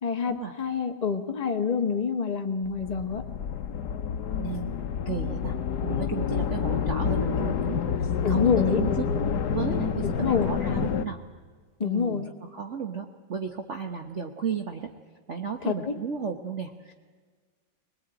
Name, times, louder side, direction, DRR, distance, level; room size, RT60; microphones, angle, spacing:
voice 1, 0.0-3.2 8.2-8.8 10.0-10.5 11.8-12.3 15.6-15.9, left 6 dB, 20° left, 4 dB, 1.4 m, -27 dB
sound 1, 2.6-11.0, left 7 dB, 60° left, 1.5 m, -28 dB
voice 2, 4.4-5.6 5.8-9.1 9.5-11.2 11.8-14.9 15.3-16.9, right 6 dB, 40° right, 4 dB, 1.3 m, -34 dB
21.5 x 21.0 x 9.0 m, 1.5 s
omnidirectional pair, 2.1 m